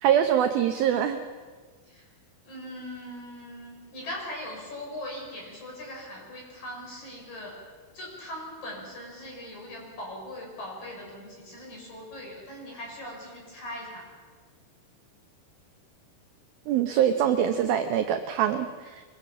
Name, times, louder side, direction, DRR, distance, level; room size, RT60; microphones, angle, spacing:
voice 1, 0.0-1.2 16.7-19.0, right 9 dB, 85° right, 7 dB, 2.1 m, -24 dB
voice 2, 2.4-7.6 7.9-14.1, left 1 dB, 40° left, -1 dB, 6.9 m, -40 dB
24.0 x 22.0 x 7.5 m, 1.5 s
omnidirectional pair, 5.5 m